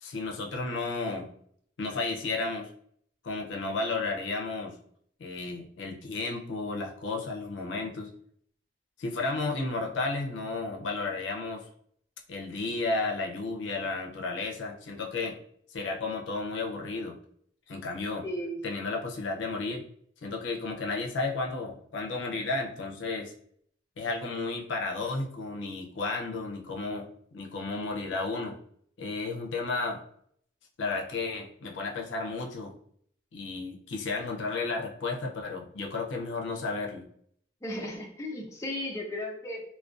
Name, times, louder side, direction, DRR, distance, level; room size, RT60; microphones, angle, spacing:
voice 1, 0.0-1.3 1.8-2.7 3.2-4.7 5.2-8.1 9.0-11.6 12.3-15.4 15.7-17.2 17.7-18.2 18.6-19.8 20.2-23.3 24.0-27.1 27.3-28.6 29.0-30.0 30.8-32.7 33.3-37.0, left 3 dB, 85° left, 1 dB, 0.5 m, -33 dB
voice 2, 18.2-18.6 37.6-39.6, left 1 dB, 15° left, -1 dB, 0.4 m, -35 dB
2.4 x 2.2 x 2.4 m, 0.64 s
head